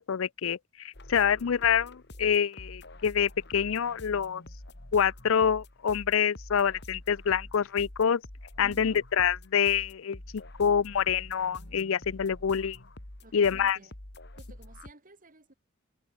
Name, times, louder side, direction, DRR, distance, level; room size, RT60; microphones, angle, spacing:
voice 1, 0.0-4.4 4.9-8.2 8.6-12.8 13.3-13.8, left 7 dB, 85° left, 0.5 m, -26 dB
sound 1, 0.9-14.9, left 1 dB, 60° left, 2.9 m, -47 dB
voice 2, 8.6-9.0 13.2-14.0 14.3-15.5, right 2 dB, 45° right, 3.6 m, -52 dB
head